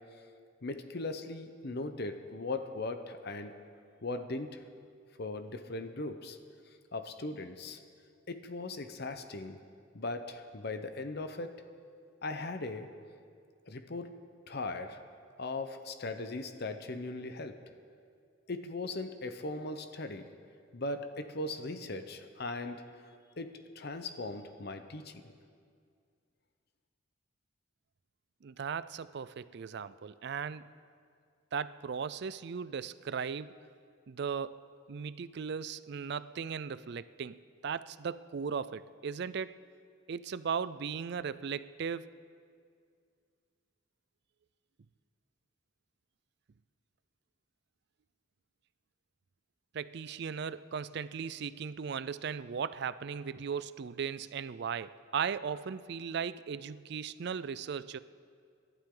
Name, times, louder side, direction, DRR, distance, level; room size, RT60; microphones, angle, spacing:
voice 1, 0.6-3.5 4.0-4.6 5.2-6.4 6.9-7.8 8.3-9.6 9.9-11.5 12.2-12.9 13.7-14.1 14.5-15.0 15.4-17.5 18.5-20.3 20.7-22.8 23.4-25.2, left 2 dB, 55° left, 8 dB, 0.8 m, -38 dB
voice 2, 28.4-30.7 31.5-33.6 34.1-34.6 34.9-39.6 40.1-42.1 49.7-58.0, right 6 dB, 55° right, 16 dB, 0.4 m, -37 dB
27.0 x 12.0 x 3.8 m, 2.2 s
head